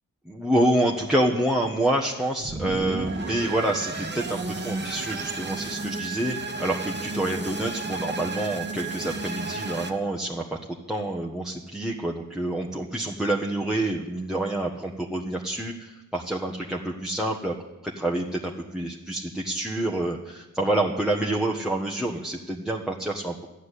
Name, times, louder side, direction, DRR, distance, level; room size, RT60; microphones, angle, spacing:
voice 1, 0.3-10.4 10.9-17.5 17.8-23.4, right 1 dB, ahead, 0 dB, 1.4 m, -27 dB
sound 1, 2.4-9.9, right 3 dB, 30° right, 1.5 m, -33 dB
13.0 x 9.7 x 8.4 m, 1.0 s
cardioid pair, 60°, 33 cm